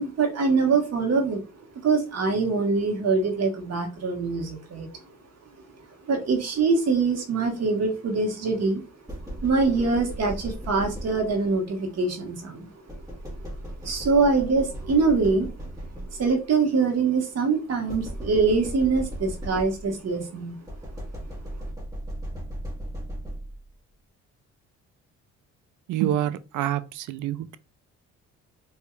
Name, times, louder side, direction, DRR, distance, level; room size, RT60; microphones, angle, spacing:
voice 1, 0.0-1.4 1.8-4.9 6.0-8.8 9.4-12.7 13.8-15.5 16.1-20.6, right 4 dB, 55° right, 1.3 m, -24 dB
sound 1, 9.1-11.5 12.9-16.5 17.9-20.1 20.7-23.7, right 1 dB, 10° right, 1.5 m, -37 dB
voice 2, 25.9-27.6, right 12 dB, 75° right, 0.5 m, -27 dB
4.4 x 2.7 x 2.4 m
cardioid pair, 90°, 30 cm